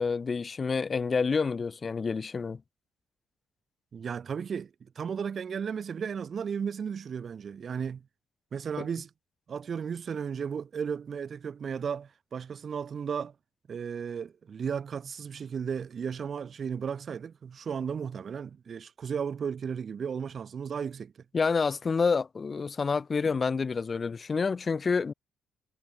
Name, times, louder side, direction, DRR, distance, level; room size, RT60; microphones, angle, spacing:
voice 1, 0.0-2.6 8.8-8.9 21.3-25.1, left 5 dB, 35° left, 6.5 m, -28 dB
voice 2, 3.9-8.0 8.5-9.1 9.5-13.3 13.7-21.1, right 7 dB, 50° right, 5.4 m, -34 dB
cardioid pair, 90°, 0 cm